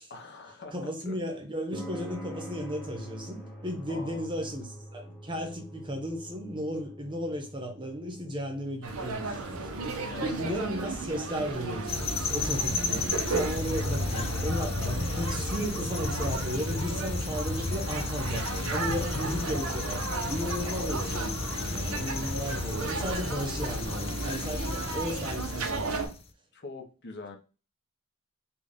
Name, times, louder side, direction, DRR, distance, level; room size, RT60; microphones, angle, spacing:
voice 1, 0.1-1.2 3.9-4.8 10.1-10.3 10.8-11.1 18.9-19.2 20.6-20.8 26.5-27.4, left 3 dB, 55° left, 0.7 m, -44 dB
voice 2, 0.7-9.7 10.2-26.1, equal, 25° right, 0.8 m, -35 dB
sound 1, 1.7-18.2, right 1 dB, 5° left, 0.9 m, -48 dB
sound 2, 8.8-26.1, right 3 dB, 90° right, 0.7 m, -35 dB
sound 3, 11.9-26.2, left 3 dB, 30° left, 0.4 m, -33 dB
3.9 x 2.3 x 3.5 m
head